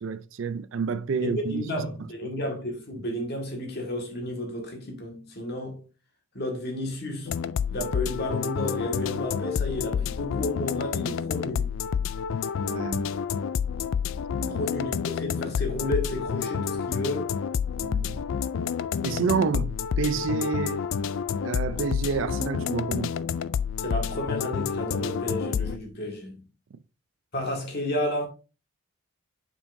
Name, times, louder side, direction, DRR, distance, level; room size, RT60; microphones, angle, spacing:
voice 1, 0.0-1.6 12.7-13.1 14.4-14.6 17.8-18.2 19.0-20.9 21.4-23.1, right 5 dB, 60° right, 0.4 m, -29 dB
voice 2, 1.2-5.8 6.3-7.4 7.7-11.7 14.5-17.3 23.8-26.4 27.3-28.3, left 1 dB, 50° left, 1.8 m, -32 dB
sound 1, 7.3-25.8, left 7 dB, 65° left, 0.3 m, -29 dB
7.1 x 5.5 x 2.6 m
head